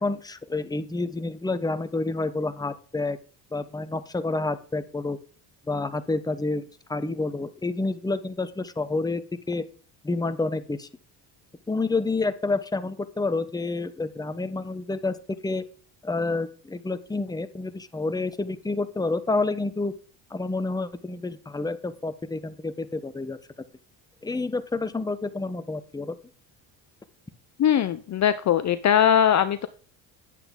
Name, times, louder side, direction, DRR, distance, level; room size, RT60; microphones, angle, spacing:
voice 1, 0.0-3.2 3.5-5.2 5.7-6.6 6.9-9.6 10.0-10.9 11.7-15.2 15.4-15.6 16.0-19.9 20.3-23.4 24.2-26.2, left 3 dB, 10° left, 11 dB, 0.8 m, -29 dB
voice 2, 27.6-29.7, left 9 dB, 40° left, 12 dB, 0.6 m, -20 dB
9.2 x 8.0 x 3.7 m, 0.41 s
supercardioid pair, 75°, 47 cm